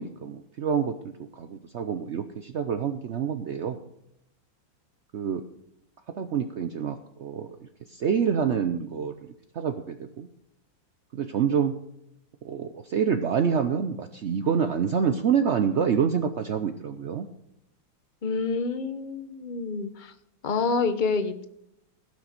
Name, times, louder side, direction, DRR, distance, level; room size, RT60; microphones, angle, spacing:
voice 1, 0.0-3.8 5.1-5.4 6.1-10.3 11.1-11.8 12.4-17.3, right 7 dB, 80° right, 9 dB, 0.6 m, -27 dB
voice 2, 18.2-20.1 20.4-21.5, left 4 dB, 40° left, 10 dB, 0.6 m, -28 dB
17.0 x 6.5 x 6.6 m, 0.78 s
omnidirectional pair, 2.1 m